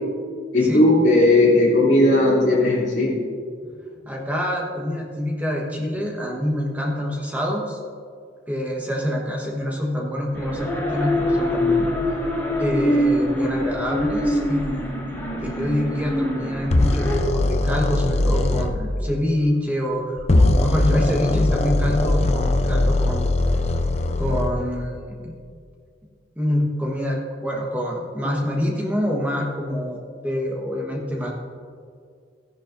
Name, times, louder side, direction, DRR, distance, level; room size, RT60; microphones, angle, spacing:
voice 1, 0.5-3.1, left 1 dB, 65° left, -7 dB, 2.9 m, -16 dB
voice 2, 4.0-7.8 8.5-12.3 12.6-15.0 15.4-23.3 24.2-25.3 26.4-31.3, equal, 10° right, -2 dB, 1.2 m, -26 dB
sound 1, 10.3-17.2, left 1 dB, 10° left, 1.9 m, -24 dB
sound 2, 16.7-18.7 20.2-24.5, left 2 dB, 35° left, 0.5 m, -20 dB
14.0 x 10.5 x 2.6 m, 2.2 s
head